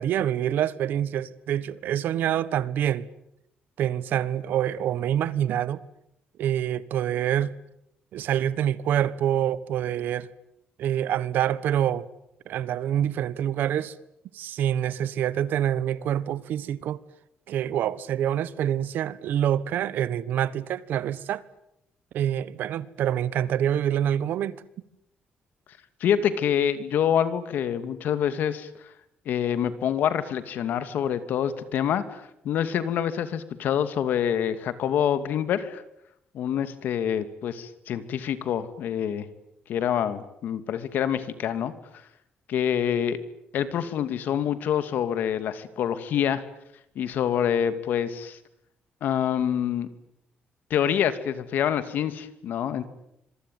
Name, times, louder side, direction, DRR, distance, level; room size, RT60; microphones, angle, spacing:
voice 1, 0.0-3.1 3.8-5.8 6.4-7.6 8.1-10.3 10.8-12.1 12.5-13.9 14.3-17.0 17.5-21.4 22.1-24.6, right 10 dB, 75° right, 1.4 m, -26 dB
voice 2, 26.0-28.9 29.3-35.8 36.3-39.3 39.7-41.7 42.5-43.2 43.5-46.4 47.0-48.4 49.0-49.9 50.7-52.8, left 9 dB, 70° left, 2.6 m, -26 dB
26.0 x 23.5 x 9.5 m
cardioid pair, 155°, 3 cm